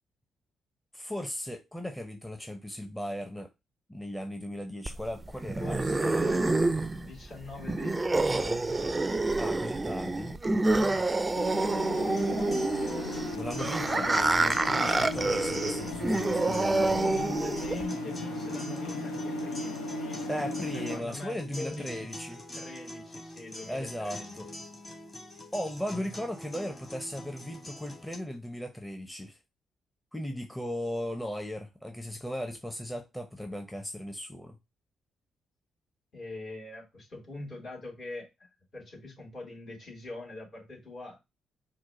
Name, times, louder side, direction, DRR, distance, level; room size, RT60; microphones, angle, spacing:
voice 1, 0.9-3.5 3.9-6.5 9.4-11.0 13.3-17.0 20.3-22.4 23.7-24.5 25.5-29.4 30.1-34.6, equal, 10° left, 0.7 m, -37 dB
sound 1, 4.9-17.9, right 2 dB, 25° right, 0.4 m, -28 dB
voice 2, 5.6-6.5 6.9-9.1 16.8-20.2 20.7-22.1 22.5-24.4 36.1-38.3 38.7-41.2, left 2 dB, 60° left, 2.8 m, -43 dB
sound 2, 11.4-21.0, left 1 dB, 90° left, 0.6 m, -36 dB
sound 3, 12.2-28.2, left 1 dB, 30° left, 1.6 m, -45 dB
4.7 x 2.1 x 3.6 m
hypercardioid pair, 45°, 0 cm